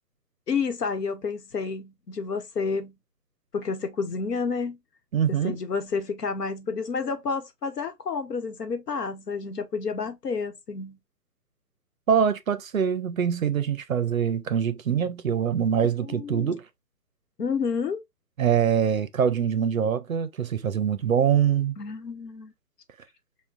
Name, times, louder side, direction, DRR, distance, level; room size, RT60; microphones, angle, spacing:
voice 1, 0.5-2.9 3.5-4.8 5.3-11.0 16.0-16.5 17.4-18.0 21.8-22.5, left 5 dB, 75° left, 1.0 m, -30 dB
voice 2, 5.1-5.6 12.1-16.6 18.4-21.8, right 8 dB, 60° right, 0.5 m, -24 dB
5.9 x 2.2 x 2.4 m
hypercardioid pair, 175°, 48 cm